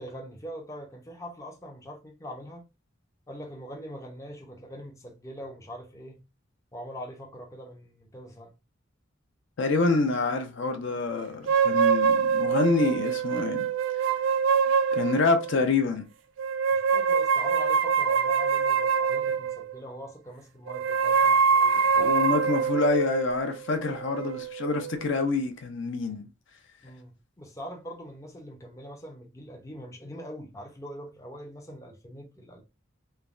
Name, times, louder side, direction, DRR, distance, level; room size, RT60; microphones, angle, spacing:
voice 1, 0.0-2.6 3.3-6.2 6.7-8.5 16.7-22.1 26.8-32.6, equal, 15° left, 0.5 m, -42 dB
voice 2, 9.6-13.7 14.9-16.1 22.0-26.3, left 3 dB, 65° left, 0.5 m, -26 dB
sound 1, 11.5-15.6 16.4-19.8 20.7-25.0, right 6 dB, 65° right, 0.3 m, -25 dB
3.2 x 2.1 x 2.4 m
head